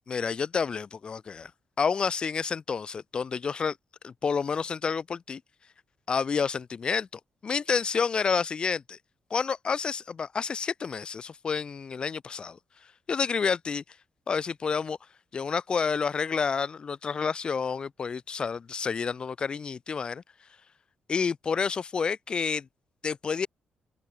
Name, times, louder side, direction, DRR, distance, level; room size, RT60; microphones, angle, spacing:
voice 1, 0.1-1.5 1.8-3.8 4.0-5.4 6.1-7.1 7.4-9.0 9.3-12.6 13.1-13.8 14.3-15.0 15.3-20.2 21.1-22.7 23.0-23.5, left 5 dB, 30° left, 0.4 m, -29 dB
open air
wide cardioid pair, 175°, 3 cm